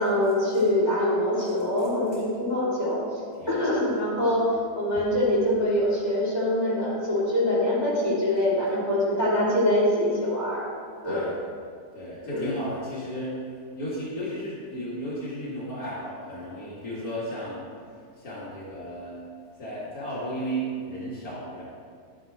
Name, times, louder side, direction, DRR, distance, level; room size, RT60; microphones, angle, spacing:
voice 1, 0.0-3.0 3.5-4.5 4.7-10.6 11.0-11.2 12.2-12.5, left 1 dB, 25° left, -9 dB, 3.1 m, -24 dB
voice 2, 3.4-3.8 4.2-4.4 11.0-11.4 11.9-13.4 13.8-17.6 18.2-19.3 19.6-21.6, equal, 65° left, -8 dB, 2.4 m, -34 dB
11.5 x 9.0 x 3.6 m, 2.2 s
omnidirectional pair, 1.7 m